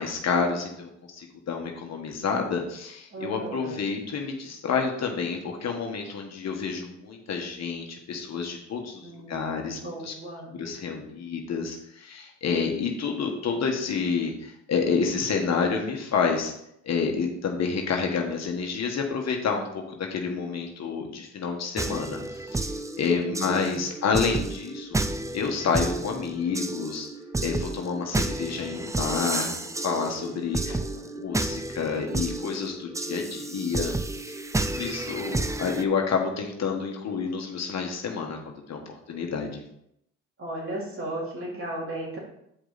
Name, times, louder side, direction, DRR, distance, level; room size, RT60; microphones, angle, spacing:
voice 1, 0.0-10.1 10.5-16.5 16.8-25.0 25.3-27.1 27.4-29.6 29.8-33.9 34.3-34.4 34.7-38.8 39.1-39.6, left 5 dB, 60° left, 2 dB, 1.4 m, -29 dB
voice 2, 3.1-3.8 9.0-10.5 23.1-23.9 30.1-30.4 30.7-31.0 40.4-42.2, right 1 dB, 45° right, -3 dB, 3.3 m, -36 dB
sound 1, 21.8-35.8, right 2 dB, 10° right, 0.5 m, -31 dB
8.5 x 5.1 x 4.0 m, 0.76 s
cardioid pair, 90°, 30 cm